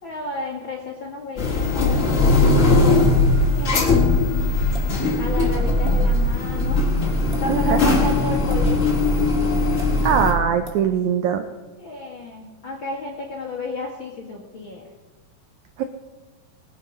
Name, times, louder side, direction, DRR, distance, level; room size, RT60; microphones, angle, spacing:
voice 1, 0.0-3.1 3.4-4.3 5.2-6.8 7.4-9.0 11.8-14.9, left 2 dB, 55° left, -1 dB, 1.3 m, -33 dB
sound 1, 1.4-10.3, left 2 dB, 40° left, 1.0 m, -19 dB
sound 2, 4.7-5.0 5.8-6.0 7.2-7.4 8.5-8.7 9.8-9.9 10.6-10.8, right 2 dB, 40° right, 0.9 m, -38 dB
voice 2, 7.5-7.8 10.0-11.4 15.8-15.9, right 8 dB, 90° right, 7 dB, 1.7 m, -21 dB
20.0 x 7.5 x 5.3 m, 1.2 s
omnidirectional pair, 4.3 m